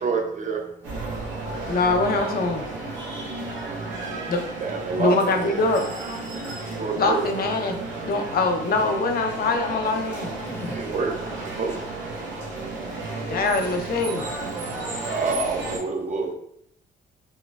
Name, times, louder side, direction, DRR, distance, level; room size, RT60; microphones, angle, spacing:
voice 1, 0.0-0.6 4.6-5.6 6.7-7.3 10.7-11.1 11.6-11.7 15.1-16.3, right 4 dB, 40° right, 2 dB, 0.6 m, -27 dB
sound 1, 0.8-15.8, right 3 dB, 75° right, 0.9 m, -33 dB
voice 2, 1.7-2.7 4.3-4.4 5.0-5.8 7.0-10.3 13.3-14.3, left 3 dB, 50° left, 4 dB, 0.5 m, -23 dB
voice 3, 3.0-4.3 6.3-6.8 10.4-11.1 12.2-12.3 12.6-13.2, left 1 dB, 10° left, 2 dB, 0.6 m, -43 dB
4.1 x 2.1 x 2.3 m, 0.72 s
cardioid pair, 90°, 20 cm